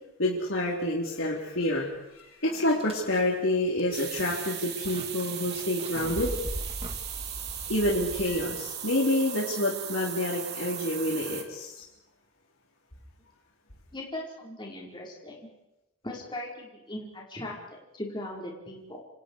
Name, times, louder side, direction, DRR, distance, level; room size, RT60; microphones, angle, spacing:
voice 1, 0.2-1.9 2.1-6.4 7.7-11.8, left 1 dB, 65° left, -4 dB, 4.5 m, -28 dB
sound 1, 1.9-2.0 2.4-8.8, equal, 25° right, 2.6 m, -41 dB
sound 2, 3.9-11.4, right 9 dB, 50° right, 3.6 m, -37 dB
voice 2, 13.9-15.4 16.0-19.0, left 1 dB, 20° left, -3 dB, 5.3 m, -39 dB
29.5 x 28.5 x 5.0 m, 0.95 s
head